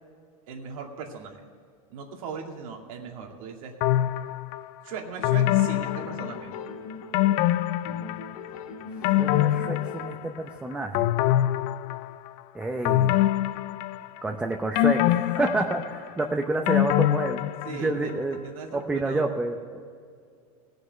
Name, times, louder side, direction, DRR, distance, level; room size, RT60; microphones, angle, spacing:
voice 1, 0.5-1.4 1.9-3.8 4.8-6.5 17.6-19.2, right 5 dB, 75° right, 2 dB, 2.4 m, -38 dB
sound 1, 3.8-4.6 5.2-6.7 7.1-8.5 8.8-10.5 10.9-12.3 12.8-14.3 14.8-18.0 18.3-18.4, left 13 dB, 50° left, 0.5 m, -24 dB
sound 2, 5.2-7.5 7.8-10.3, left 5 dB, 75° left, 1.6 m, -40 dB
voice 2, 9.0-11.1 12.5-13.1 14.2-18.4 18.7-19.8, right 2 dB, 5° right, 3 dB, 0.7 m, -29 dB
17.0 x 6.6 x 8.0 m, 2.2 s
supercardioid pair, 125°, 18 cm